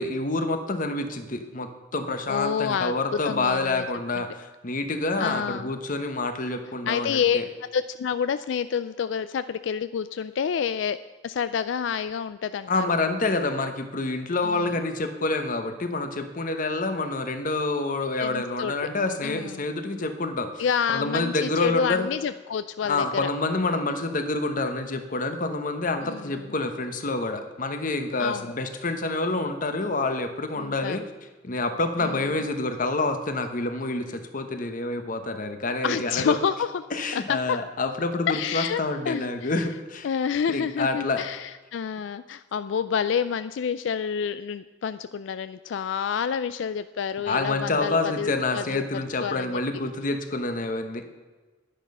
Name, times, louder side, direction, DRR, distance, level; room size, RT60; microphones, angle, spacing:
voice 1, 0.0-7.4 12.7-20.6 20.9-22.1 22.8-31.0 31.4-36.4 36.9-40.1 40.5-41.2 47.3-51.0, left 2 dB, 45° left, 7 dB, 1.1 m, -27 dB
voice 2, 2.3-3.0 3.2-3.9 4.2-4.3 5.2-5.7 6.9-7.4 7.7-11.0 11.2-12.9 14.4-14.8 18.2-18.7 19.2-19.7 20.6-23.3 26.0-26.5 28.2-28.5 30.6-31.0 32.0-32.2 35.8-36.8 37.1-37.6 38.3-39.5 40.0-49.6, left 7 dB, 85° left, 13 dB, 0.4 m, -28 dB
10.5 x 10.0 x 5.5 m, 1.3 s
head